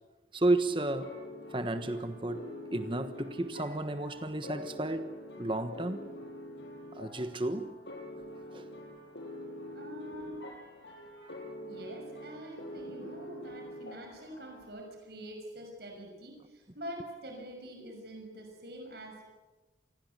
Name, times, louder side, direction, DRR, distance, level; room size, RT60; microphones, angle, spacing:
voice 1, 0.3-1.1 1.5-2.5 2.7-5.1 5.4-6.0 6.9-7.7 8.5-8.7 11.2-11.3, right 2 dB, 25° right, 9 dB, 1.2 m, -32 dB
sound 1, 1.0-14.7, left 1 dB, 70° left, 7.0 m, -45 dB
voice 2, 9.6-10.5 11.6-19.2, equal, 60° right, 3 dB, 6.0 m, -45 dB
27.5 x 20.5 x 8.2 m, 1.2 s
head